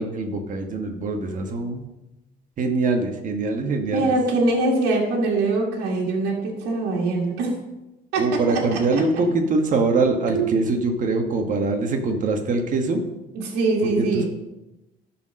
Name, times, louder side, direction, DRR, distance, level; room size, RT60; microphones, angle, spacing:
voice 1, 0.0-1.9 2.6-4.1 8.2-13.0 13.8-14.3, right 3 dB, 50° right, 4 dB, 1.3 m, -23 dB
voice 2, 3.9-7.5 8.1-9.0 10.3-10.6 13.3-14.3, right 3 dB, 85° right, -2 dB, 1.9 m, -23 dB
11.5 x 4.4 x 6.3 m, 0.98 s
cardioid pair, 110°, 17 cm